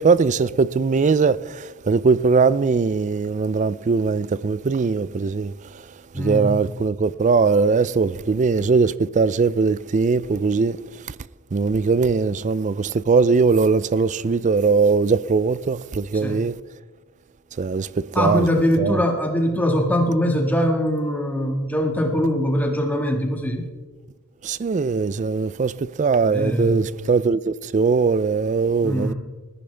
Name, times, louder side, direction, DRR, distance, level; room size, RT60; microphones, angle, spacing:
voice 1, 0.0-5.5 6.2-10.8 11.5-16.6 17.6-17.9 18.2-18.5 18.8-19.0 24.4-29.1, right 4 dB, 35° right, 0.3 m, -20 dB
voice 2, 6.1-6.5 16.1-16.4 18.1-23.7 26.2-26.9 28.8-29.1, equal, 10° left, 1.7 m, -22 dB
20.5 x 14.0 x 3.4 m
head